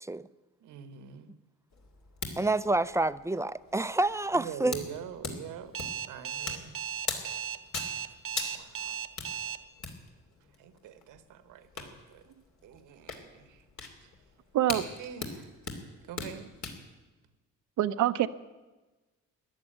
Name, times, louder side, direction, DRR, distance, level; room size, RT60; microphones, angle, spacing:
voice 1, 0.6-1.3 4.3-5.8 6.1-6.8 8.3-9.3 10.6-12.2 12.6-13.6 14.0-14.1 15.0-15.5 16.1-16.5, right 9 dB, 90° right, 1.3 m, -44 dB
sound 1, 1.7-16.8, left 4 dB, 65° left, 2.8 m, -42 dB
voice 2, 2.4-4.7, right 2 dB, 10° right, 0.4 m, -28 dB
Alarm, 5.7-9.6, right 8 dB, 45° right, 0.9 m, -36 dB
voice 3, 14.5-14.9 17.8-18.3, right 13 dB, 75° right, 0.7 m, -25 dB
14.5 x 11.0 x 9.0 m
cardioid pair, 90°, 30 cm